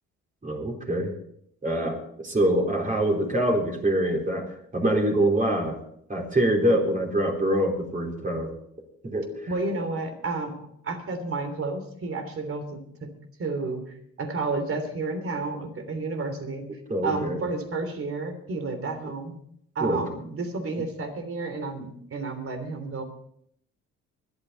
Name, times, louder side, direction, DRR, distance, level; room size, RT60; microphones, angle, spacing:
voice 1, 0.4-1.1 1.6-5.8 6.1-8.5 9.0-9.5 16.9-17.4 19.8-20.0, right 1 dB, 25° right, 0 dB, 4.0 m, -25 dB
voice 2, 9.5-10.6 10.8-13.1 13.4-16.7 17.0-19.3 19.7-23.0, right 3 dB, 45° right, 7 dB, 3.2 m, -31 dB
24.5 x 9.0 x 4.1 m, 0.69 s
cardioid pair, 90°, 30 cm